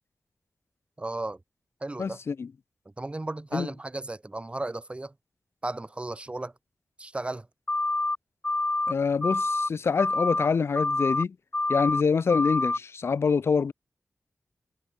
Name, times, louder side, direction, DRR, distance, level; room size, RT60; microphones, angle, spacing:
voice 1, 1.0-1.4 1.8-2.2 3.0-5.1 5.6-6.5 7.0-7.5, right 2 dB, 25° right, 1.9 m, -34 dB
voice 2, 2.0-2.5 3.5-3.7 8.9-11.4 11.7-13.7, left 5 dB, 60° left, 0.4 m, -25 dB
sound 1, 7.7-8.2 8.4-8.9 9.2-9.7 10.0-10.5 10.8-11.2 11.5-12.0 12.3-12.8, left 2 dB, 25° left, 0.8 m, -27 dB
wide cardioid pair, 125°, 5 cm